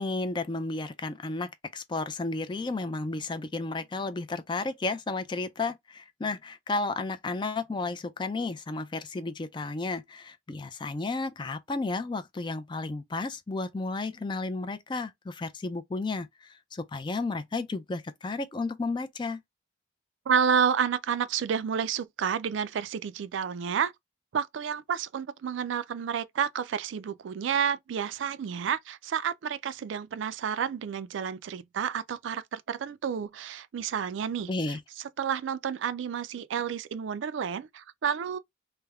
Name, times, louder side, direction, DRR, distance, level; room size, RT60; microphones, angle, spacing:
voice 1, 0.0-19.4 34.5-34.8, left 3 dB, 25° left, 0.3 m, -33 dB
voice 2, 20.3-23.9 24.3-34.5 35.2-38.4, right 7 dB, 75° right, 0.3 m, -30 dB
3.3 x 2.1 x 3.4 m
head